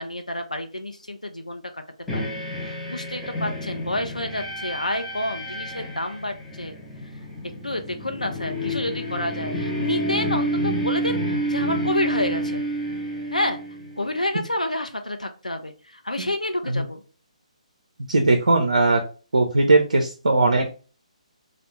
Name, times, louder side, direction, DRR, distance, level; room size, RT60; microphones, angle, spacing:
voice 1, 0.0-1.8 2.1-2.3 2.6-6.7 7.6-12.6 13.3-13.6 14.0-17.0, left 1 dB, 85° left, 6 dB, 0.4 m, -29 dB
sound 1, 2.1-14.1, right 1 dB, 5° left, 0.4 m, -29 dB
voice 2, 18.1-19.0 19.3-20.7, right 2 dB, 70° right, 4 dB, 0.4 m, -19 dB
2.3 x 2.0 x 3.0 m, 0.37 s
figure-of-eight pair, 140°, 4 cm